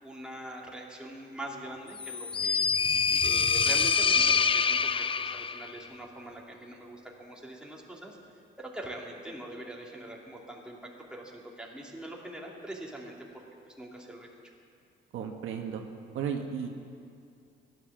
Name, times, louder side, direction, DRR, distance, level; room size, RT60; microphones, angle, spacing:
voice 1, 0.0-2.7 3.2-4.9 5.2-8.2 8.6-10.8 11.1-14.3, right 1 dB, 5° right, -2 dB, 2.8 m, -43 dB
sound 1, 2.0-5.7, left 6 dB, 25° left, 0.4 m, -26 dB
voice 2, 15.1-15.8 16.1-16.7, right 7 dB, 85° right, 3 dB, 1.4 m, -34 dB
15.5 x 11.0 x 7.3 m, 2.4 s
cardioid pair, 90°, 20 cm